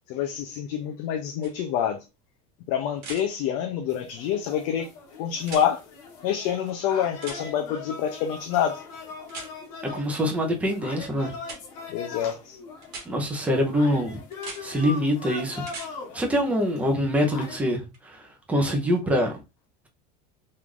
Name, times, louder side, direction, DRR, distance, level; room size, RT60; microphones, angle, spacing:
voice 1, 0.1-2.0 2.7-4.9 5.2-5.8 6.2-8.8 11.9-12.6, left 9 dB, 55° left, 0.5 m, -27 dB
sound 1, 1.4-1.5 3.0-3.2 5.4-5.7 7.2-7.4 9.3-9.5 11.4-11.6 12.8-13.1 14.3-14.6 15.6-15.9 17.9-18.0, right 4 dB, 50° right, 1.3 m, -39 dB
sound 2, 3.9-17.6, left 4 dB, 85° left, 1.2 m, -41 dB
voice 2, 9.9-11.3 13.1-14.2 14.6-15.6 16.1-19.3, equal, 5° right, 0.6 m, -25 dB
3.2 x 2.5 x 3.7 m
cardioid pair, 170°, 20 cm